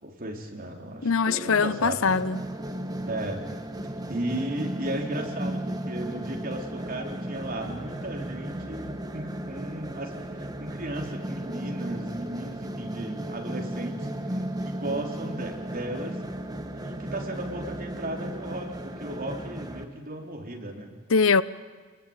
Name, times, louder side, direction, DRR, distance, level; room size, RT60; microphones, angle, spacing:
voice 1, 0.0-2.1 3.1-3.4 4.1-16.2 16.7-20.9, right 1 dB, 45° right, 4.0 m, -35 dB
voice 2, 1.0-2.4 21.1-21.4, left 5 dB, 80° left, 0.7 m, -22 dB
sound 1, 2.1-19.8, right 1 dB, 20° right, 1.5 m, -35 dB
28.0 x 21.0 x 9.1 m
head